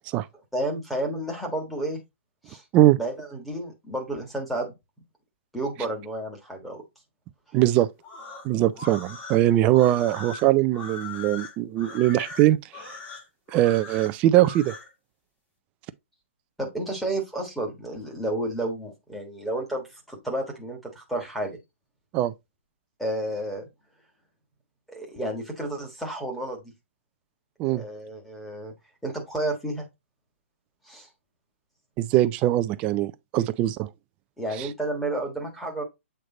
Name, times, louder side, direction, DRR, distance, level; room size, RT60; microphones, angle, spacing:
voice 1, 0.5-2.0 2.5-2.6 3.0-4.7 5.5-6.8 16.6-21.6 23.0-23.6 24.9-26.7 27.7-28.7 29.0-29.9 30.9-31.1 34.4-35.8, right 1 dB, ahead, 1.4 m, -31 dB
voice 2, 7.5-7.9 8.4-12.6 13.5-14.7 22.1-22.3 27.6-27.8 32.0-33.9 34.6-34.7, right 14 dB, 15° right, 0.3 m, -21 dB
sound 1, 8.0-14.9, left 3 dB, 20° left, 1.4 m, -40 dB
7.8 x 3.3 x 3.8 m
hypercardioid pair, 165°, 7 cm